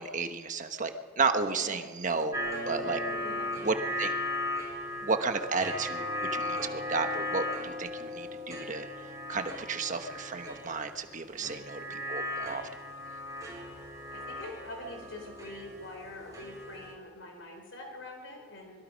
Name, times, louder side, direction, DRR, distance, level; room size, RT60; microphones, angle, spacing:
voice 1, 0.0-2.3 2.6-3.0 3.6-4.1 5.0-8.9 9.3-12.6, right 4 dB, 40° right, 7 dB, 1.3 m, -32 dB
voice 2, 1.5-1.8 3.1-3.6 11.4-11.6 14.1-18.8, left 2 dB, 70° left, 3 dB, 4.0 m, -45 dB
sound 1, 2.3-16.9, left 1 dB, 20° right, 5.1 m, -37 dB
25.5 x 22.0 x 5.3 m, 1.5 s
head